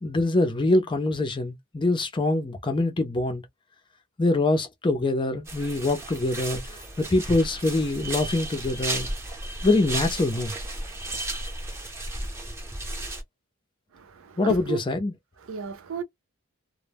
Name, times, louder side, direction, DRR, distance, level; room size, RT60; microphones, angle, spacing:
voice 1, 0.0-3.4 4.2-6.6 7.0-9.1 9.6-10.5 14.4-15.1, left 2 dB, 20° left, 0.5 m, -24 dB
sound 1, 5.5-13.2, right 1 dB, 10° right, 0.7 m, -34 dB
voice 2, 13.9-14.8 15.4-16.0, right 6 dB, 65° right, 0.5 m, -34 dB
2.1 x 2.0 x 3.3 m
head